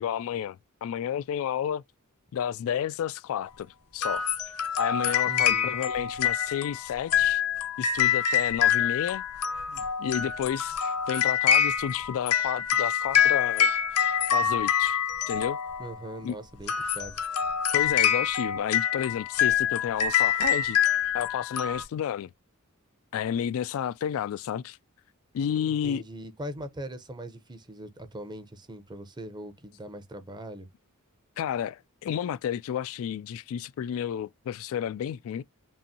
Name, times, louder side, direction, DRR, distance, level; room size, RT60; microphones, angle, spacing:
voice 1, 0.0-1.8 2.3-4.3 4.8-7.4 7.8-9.2 9.7-15.0 15.3-15.6 16.2-16.4 17.7-20.8 21.1-22.3 23.1-24.8 25.3-26.0 31.4-35.4, left 9 dB, 65° left, 0.3 m, -31 dB
sound 1, 4.0-16.0 16.6-21.8, left 8 dB, 85° left, 0.8 m, -26 dB
voice 2, 5.3-5.7 15.8-17.2 25.7-30.7, right 1 dB, 20° right, 0.7 m, -41 dB
5.4 x 2.6 x 2.7 m
head